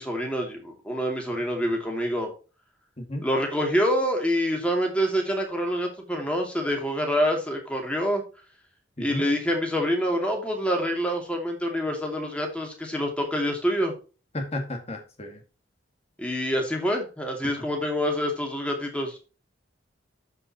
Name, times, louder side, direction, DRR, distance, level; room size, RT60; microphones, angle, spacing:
voice 1, 0.0-2.3 3.2-8.2 9.0-13.9 16.2-19.2, equal, 5° left, 1 dB, 2.5 m, -26 dB
voice 2, 3.0-3.3 9.0-9.3 14.3-15.4 17.4-17.5, left 1 dB, 35° left, 3 dB, 1.9 m, -33 dB
13.0 x 5.4 x 2.9 m, 0.34 s
head